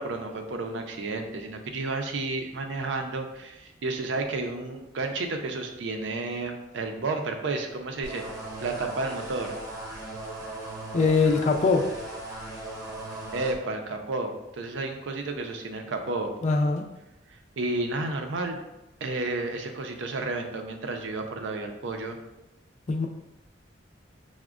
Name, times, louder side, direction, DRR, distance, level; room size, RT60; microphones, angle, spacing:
voice 1, 0.0-8.2 8.6-9.6 13.3-16.3 17.6-18.6 19.0-22.2, right 3 dB, 75° right, 4 dB, 0.5 m, -31 dB
sound 1, 8.0-13.6, right 2 dB, 20° right, 0.8 m, -38 dB
voice 2, 10.9-11.8 16.4-16.8 22.9-23.1, left 4 dB, 40° left, 3 dB, 0.3 m, -22 dB
5.8 x 2.1 x 2.4 m, 0.94 s
head